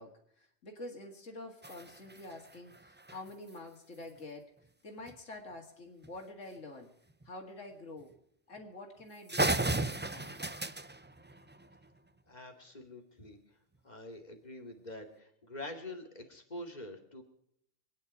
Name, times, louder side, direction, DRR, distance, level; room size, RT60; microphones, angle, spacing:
voice 1, 0.0-4.5 4.8-6.9 7.2-8.2 8.5-10.4, left 2 dB, 80° left, 3 dB, 2.5 m, -47 dB
sound 1, 1.6-3.6 5.1-5.2 5.5-5.6 6.0-6.2 7.1-7.3 8.0-8.1 8.6-8.7 9.0-9.1 9.3-12.0, right 2 dB, 15° right, 0.4 m, -35 dB
voice 2, 12.3-13.4 13.8-17.2, left 1 dB, 35° left, 3 dB, 2.7 m, -46 dB
26.5 x 10.0 x 4.8 m, 0.73 s
omnidirectional pair, 1.3 m